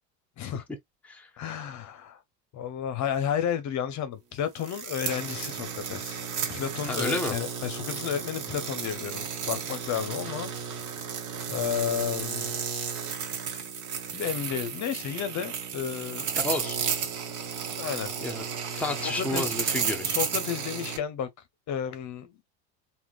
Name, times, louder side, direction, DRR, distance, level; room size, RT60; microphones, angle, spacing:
voice 1, 1.4-2.2 2.5-6.2 6.5-10.5 11.5-12.6 14.1-16.3 17.7-18.1 18.6-18.9 19.2-19.5 20.0-21.3 21.7-22.4, left 8 dB, 45° left, 0.9 m, -32 dB
sound 1, 4.6-21.0, right 6 dB, 45° right, 1.4 m, -33 dB
voice 2, 6.9-7.4 16.3-16.8 18.2-18.4 18.8-20.1, left 2 dB, 5° left, 0.8 m, -31 dB
3.6 x 2.9 x 2.4 m
supercardioid pair, 115°, 41 cm